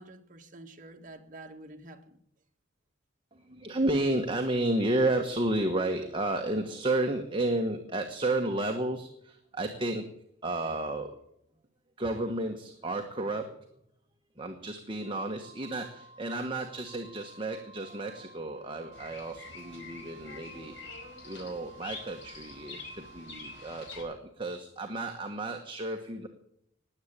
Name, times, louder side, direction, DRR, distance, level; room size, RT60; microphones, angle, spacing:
voice 1, 0.0-2.2 12.0-12.1, right 2 dB, 40° right, 1.7 m, -48 dB
voice 2, 3.4-10.1 10.4-11.2 12.0-13.5 14.4-20.7 21.2-26.3, right 2 dB, 25° right, 1.3 m, -32 dB
Wind instrument woodwind instrument, 15.0-24.0, right 4 dB, 5° right, 6.4 m, -54 dB
Bird vocalization bird call bird song, 18.9-24.0, left 4 dB, 70° left, 5.1 m, -46 dB
20.0 x 8.1 x 8.9 m
head